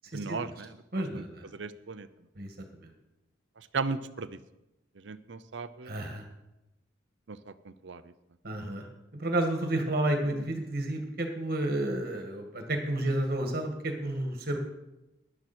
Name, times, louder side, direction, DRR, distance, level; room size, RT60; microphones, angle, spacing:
voice 1, 0.1-1.2 1.5-2.1 3.6-4.3 5.0-6.1 7.3-8.1 10.3-10.4, right 4 dB, 75° right, 13 dB, 0.7 m, -37 dB
voice 2, 0.9-1.5 2.4-2.5 2.8-2.9 5.8-6.2 8.4-8.9 9.1-14.6, right 1 dB, 55° right, 4 dB, 2.0 m, -31 dB
16.0 x 11.0 x 4.5 m, 0.96 s
head